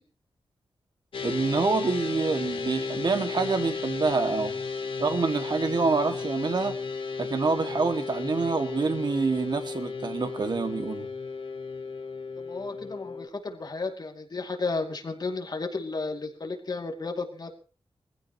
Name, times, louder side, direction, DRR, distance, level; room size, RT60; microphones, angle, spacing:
sound 1, 1.1-13.3, left 4 dB, 60° left, 2.3 m, -34 dB
voice 1, 1.2-4.5 5.0-6.8 7.2-11.1, right 4 dB, 50° right, 7 dB, 2.1 m, -27 dB
voice 2, 12.4-17.6, left 3 dB, 45° left, 3 dB, 2.5 m, -33 dB
21.5 x 15.5 x 3.1 m, 0.37 s
wide cardioid pair, 110°, 10 cm